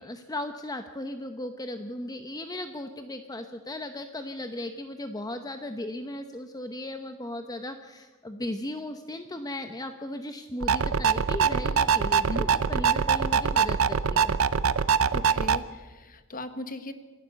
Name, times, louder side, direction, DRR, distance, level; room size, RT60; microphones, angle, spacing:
voice 1, 0.0-14.4, left 1 dB, 20° left, 7 dB, 0.8 m, -37 dB
sound 1, 10.6-15.6, right 6 dB, 80° right, 0.7 m, -23 dB
voice 2, 15.1-16.9, left 1 dB, 40° left, 10 dB, 1.4 m, -38 dB
27.5 x 12.0 x 8.1 m, 1.3 s
head